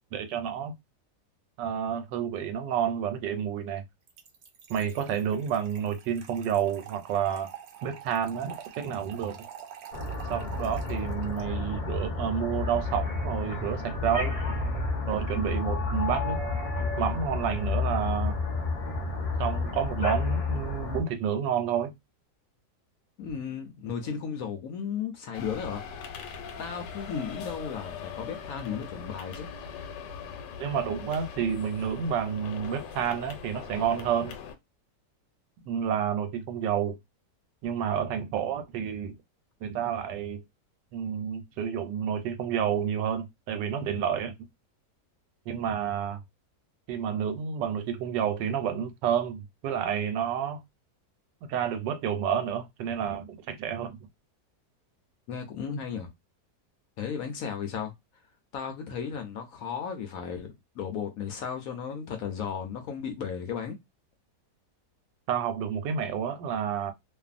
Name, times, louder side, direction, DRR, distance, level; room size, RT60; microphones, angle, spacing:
voice 1, 0.1-0.7 1.6-3.8 4.7-7.5 7.8-9.4 10.3-14.4 15.1-16.4 17.0-18.4 19.4-21.9 30.6-34.3 35.7-37.0 37.6-39.1 39.6-40.4 40.9-44.3 45.5-46.2 46.9-50.6 51.4-54.0 65.3-66.9, right 8 dB, 90° right, 1.3 m, -30 dB
Trickle dribble / Fill (with liquid), 4.1-11.4, right 9 dB, 65° right, 1.0 m, -46 dB
sound 1, 9.9-21.0, left 3 dB, 35° left, 0.7 m, -30 dB
voice 2, 23.2-25.8 26.6-29.5 55.3-56.1 57.0-57.9 58.5-63.8, left 7 dB, 65° left, 0.9 m, -35 dB
sound 2, 25.3-34.6, left 6 dB, 85° left, 1.2 m, -41 dB
2.6 x 2.5 x 2.4 m
omnidirectional pair, 1.8 m